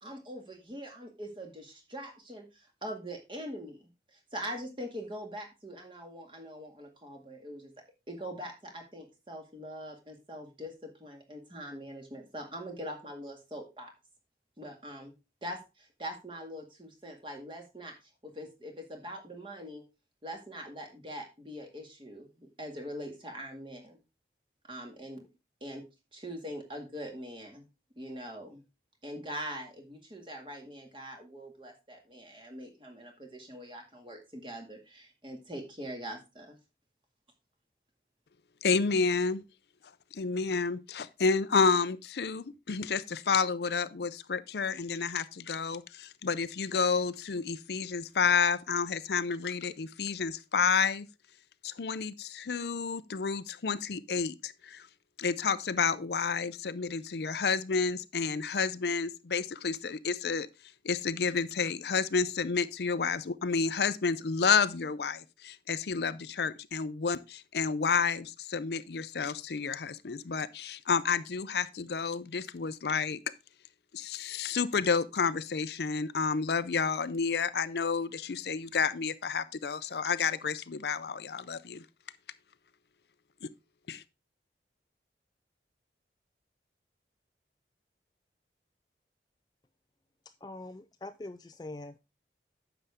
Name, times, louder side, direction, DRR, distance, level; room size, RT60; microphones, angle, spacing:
voice 1, 0.0-7.7 8.1-13.9 14.6-15.1 15.4-18.0 18.2-19.8 20.2-24.0 24.7-25.3 25.6-25.8 26.1-27.6 28.0-28.6 29.0-36.6, equal, 30° right, 2.1 m, -43 dB
voice 2, 38.6-39.4 40.1-51.1 51.6-54.8 55.2-60.5 60.8-73.2 73.9-81.8 83.4-83.5 83.9-84.0, left 5 dB, 70° left, 0.5 m, -30 dB
voice 3, 90.4-92.0, left 2 dB, 25° left, 0.3 m, -43 dB
9.8 x 6.8 x 3.5 m
head